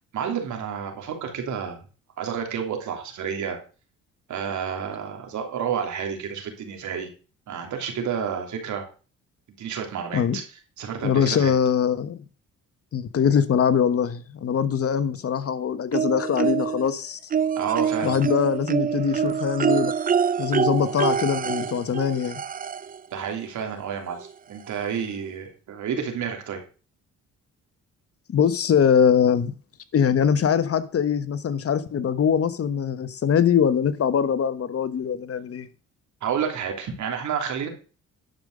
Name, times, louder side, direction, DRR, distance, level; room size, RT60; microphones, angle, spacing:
voice 1, 0.1-1.8 2.2-3.6 4.3-7.1 7.5-8.8 9.6-11.5 17.6-18.2 23.1-26.6 36.2-37.7, right 7 dB, 75° right, 3.1 m, -30 dB
voice 2, 11.0-12.2 12.9-17.2 18.0-19.9 20.4-22.4 28.3-29.5 29.9-35.7, left 7 dB, 50° left, 1.1 m, -22 dB
sound 1, 15.9-16.9 17.3-23.0 24.2-24.3 24.7-24.8, right 7 dB, 30° right, 0.5 m, -25 dB
11.5 x 5.4 x 6.6 m
cardioid pair, 90°, 30 cm